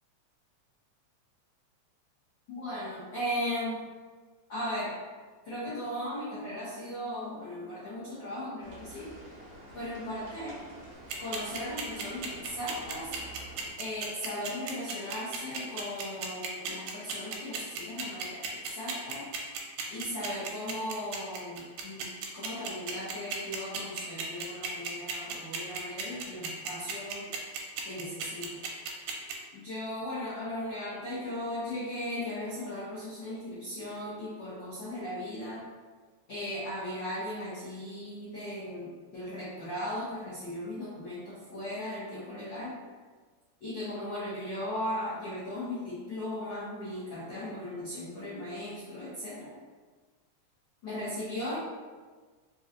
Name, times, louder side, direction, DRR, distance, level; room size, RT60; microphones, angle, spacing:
voice 1, 2.5-3.8 4.5-4.9 5.4-9.1 9.7-10.6 11.2-13.1 13.8-19.2 19.9-27.3 27.8-28.6 29.5-35.6 36.3-42.7 43.6-49.5 50.8-51.6, left 1 dB, 85° left, -10 dB, 1.0 m, -37 dB
sound 1, 8.6-13.7, right 1 dB, 65° right, 1.4 m, -48 dB
sound 2, 11.1-29.3, right 6 dB, 80° right, 1.8 m, -35 dB
4.5 x 2.6 x 2.5 m, 1.4 s
omnidirectional pair, 3.3 m